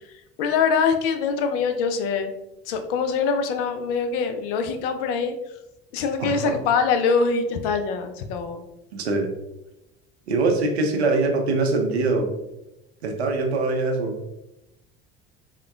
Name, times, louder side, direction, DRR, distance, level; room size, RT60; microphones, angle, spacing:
voice 1, 0.4-2.3 2.7-5.3 5.9-8.6, left 5 dB, 60° left, 7 dB, 0.4 m, -23 dB
voice 2, 8.9-9.3 10.3-12.3 13.0-14.1, right 3 dB, 80° right, 3 dB, 0.5 m, -23 dB
3.5 x 2.1 x 2.3 m, 0.90 s
figure-of-eight pair, 65°, 32 cm